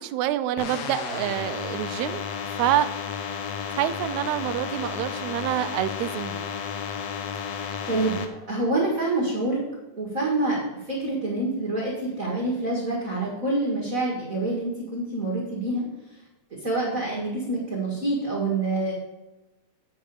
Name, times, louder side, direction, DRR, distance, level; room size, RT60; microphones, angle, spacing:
voice 1, 0.0-2.2 2.6-2.9 3.8-6.5, right 12 dB, 80° right, 11 dB, 1.8 m, -27 dB
sound 1, 0.6-8.3, left 7 dB, 65° left, 1.9 m, -32 dB
voice 2, 7.4-8.2 8.5-9.6 10.0-15.9 16.6-18.9, right 2 dB, 35° right, -3 dB, 1.7 m, -27 dB
8.7 x 5.7 x 6.8 m, 1.0 s
omnidirectional pair, 3.4 m